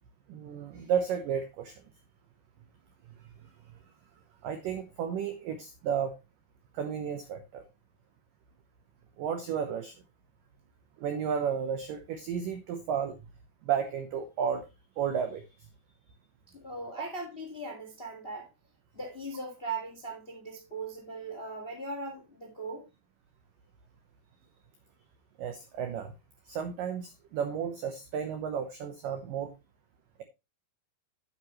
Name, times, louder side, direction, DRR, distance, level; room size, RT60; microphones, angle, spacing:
voice 1, 0.3-1.8 3.4-3.5 4.4-6.2 6.7-7.6 9.2-10.0 11.0-13.2 13.6-14.7 15.0-15.7 25.4-26.1 26.5-29.5, right 7 dB, 80° right, 1.9 m, -33 dB
voice 2, 16.5-18.5 18.9-22.9, right 3 dB, 30° left, 1.0 m, -39 dB
8.7 x 8.6 x 3.1 m
omnidirectional pair, 5.1 m